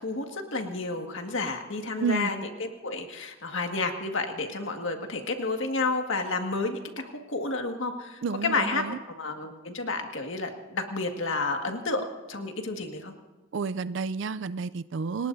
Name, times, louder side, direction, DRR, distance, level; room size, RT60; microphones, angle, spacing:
voice 1, 0.0-13.1, left 3 dB, 65° left, 4 dB, 1.8 m, -31 dB
voice 2, 2.0-2.3 8.2-9.0 13.5-15.3, right 5 dB, 60° right, 14 dB, 0.4 m, -30 dB
28.5 x 19.0 x 2.7 m, 1.2 s
head